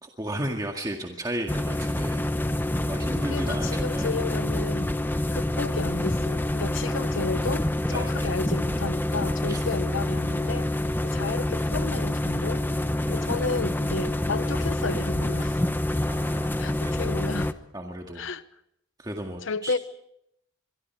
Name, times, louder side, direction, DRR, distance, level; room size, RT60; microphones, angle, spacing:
voice 1, 0.0-2.3 2.8-4.2 6.8-7.3 7.9-8.3 9.5-9.6 13.1-13.9 16.1-16.5 16.8-16.9 17.7-18.3 19.0-19.7, right 1 dB, 20° right, 1.9 m, -35 dB
sound 1, 1.5-17.5, left 1 dB, 10° left, 0.9 m, -27 dB
voice 2, 3.1-10.7 11.0-12.6 13.1-15.6 16.6-17.5 18.1-18.4 19.4-19.8, left 3 dB, 85° left, 1.0 m, -32 dB
25.5 x 23.0 x 4.6 m
head